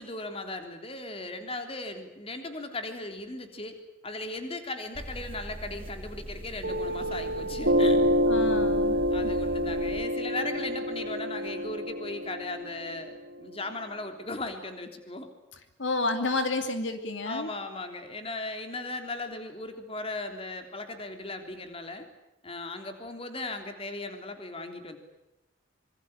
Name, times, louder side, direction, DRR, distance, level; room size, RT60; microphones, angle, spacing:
voice 1, 0.0-3.8 4.0-8.2 9.1-15.3 17.2-22.1 22.4-25.0, left 2 dB, 30° left, 6 dB, 3.5 m, -37 dB
sound 1, 4.9-10.0, equal, 30° right, 2.4 m, -41 dB
Piano, 6.6-13.7, equal, 70° right, 3.1 m, -27 dB
voice 2, 8.3-9.0 15.8-17.5, left 2 dB, 75° left, 7 dB, 2.8 m, -30 dB
26.0 x 23.5 x 8.9 m, 0.93 s
head